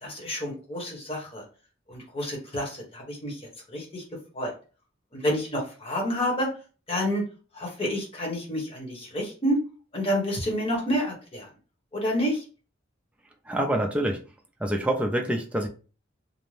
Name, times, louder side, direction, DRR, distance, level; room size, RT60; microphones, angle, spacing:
voice 1, 0.0-1.4 1.9-4.0 4.3-4.5 5.1-6.5 6.9-7.2 7.5-9.6 9.9-11.5 11.9-12.4, equal, 30° left, -2 dB, 0.9 m, -29 dB
voice 2, 13.5-14.2 14.6-15.7, right 1 dB, 5° right, 2 dB, 0.3 m, -26 dB
2.5 x 2.0 x 3.2 m, 0.37 s
head